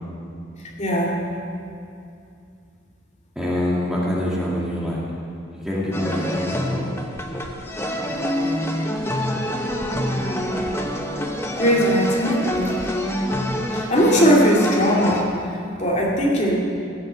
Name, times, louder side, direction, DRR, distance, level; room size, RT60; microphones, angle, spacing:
voice 1, 0.8-1.2 8.1-8.6 11.5-12.4 13.7-15.3 15.8-16.6, equal, 35° left, -3 dB, 2.4 m, -19 dB
voice 2, 3.4-5.0 5.5-6.9, left 1 dB, 5° right, -6 dB, 1.8 m, -25 dB
sound 1, 5.9-15.2, equal, 15° left, 1.0 m, -26 dB
16.0 x 7.5 x 8.1 m, 2.5 s
head